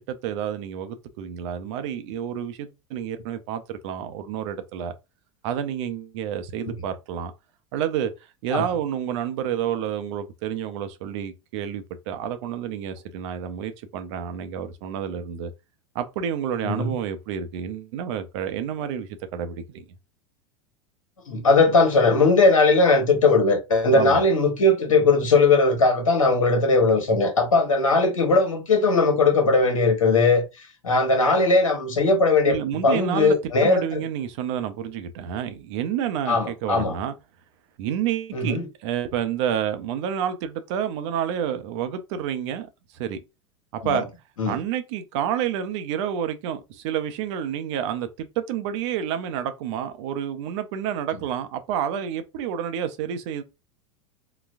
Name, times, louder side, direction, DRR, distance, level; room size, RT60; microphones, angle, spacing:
voice 1, 0.1-5.0 5.4-7.3 7.7-8.1 8.4-15.5 15.9-19.8 23.9-24.2 32.4-37.1 37.8-42.7 42.9-43.2 43.7-44.1 44.5-53.4, right 9 dB, 60° right, 0.6 m, -29 dB
voice 2, 21.3-32.6 32.8-34.0 36.3-36.9 38.3-38.7 43.8-44.0 44.4-44.6, left 3 dB, 85° left, 1.0 m, -19 dB
4.0 x 2.2 x 2.5 m
hypercardioid pair, 90°, 17 cm